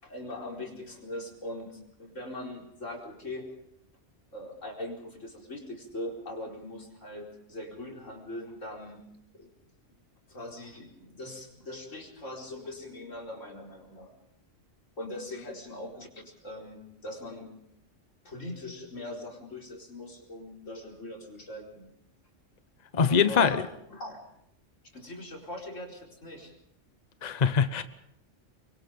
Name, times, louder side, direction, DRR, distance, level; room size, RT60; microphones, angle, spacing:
voice 1, 0.0-3.5 4.3-9.0 9.3-9.5 10.3-14.1 15.0-17.5 18.2-21.9 23.1-23.6 23.9-24.2 24.9-26.5, left 1 dB, 85° left, 0 dB, 4.8 m, -41 dB
voice 2, 22.9-23.6 27.2-27.8, left 6 dB, 35° left, 11 dB, 1.0 m, -23 dB
24.5 x 24.0 x 5.3 m, 0.76 s
omnidirectional pair, 1.3 m